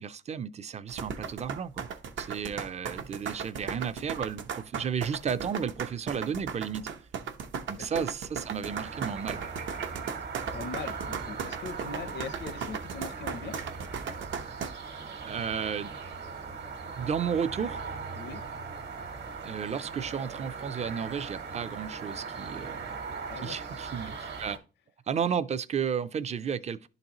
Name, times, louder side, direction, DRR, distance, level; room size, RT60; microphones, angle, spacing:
voice 1, 0.0-1.9 2.2-6.9 7.7-9.4 15.3-15.9 17.0-17.8 19.4-22.9 23.4-24.6 25.1-26.9, right 7 dB, 35° right, 0.4 m, -33 dB
sound 1, 0.9-14.7, right 7 dB, 80° right, 0.8 m, -36 dB
voice 2, 7.8-8.1 10.5-13.6 18.1-18.4 23.3-23.6 24.0-24.2, left 5 dB, 70° left, 0.6 m, -41 dB
sound 2, 8.7-24.6, right 5 dB, 65° right, 1.2 m, -39 dB
11.0 x 3.9 x 2.9 m
wide cardioid pair, 170°, 19 cm